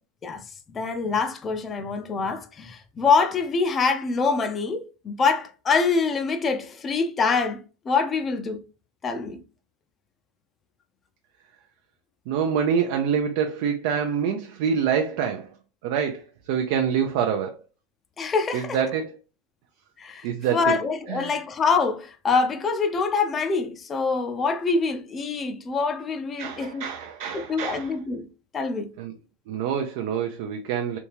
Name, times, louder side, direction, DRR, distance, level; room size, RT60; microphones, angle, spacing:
voice 1, 0.7-7.6 7.9-8.6 9.0-9.4 18.2-18.8 20.0-26.8 27.3-28.3 28.5-28.9, left 4 dB, 20° left, 0.5 m, -25 dB
voice 2, 12.3-15.5 15.8-17.6 18.5-19.2 20.2-20.8 21.1-21.3 26.4-28.0 29.0-29.1 29.5-31.0, right 7 dB, 55° right, 0.4 m, -26 dB
3.4 x 2.8 x 2.9 m
supercardioid pair, 150°, 0 cm